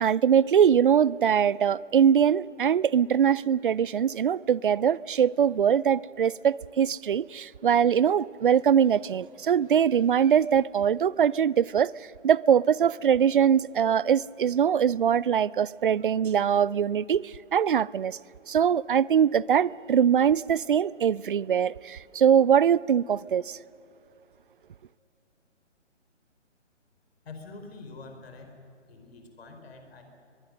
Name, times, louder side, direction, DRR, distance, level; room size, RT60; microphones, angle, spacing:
voice 1, 0.0-11.9 12.2-18.2 18.5-23.6, right 8 dB, 45° right, 0.4 m, -22 dB
voice 2, 27.2-28.6 28.9-30.0, left 3 dB, 55° left, 4.5 m, -45 dB
22.5 x 22.5 x 6.4 m
figure-of-eight pair, 145°, 36 cm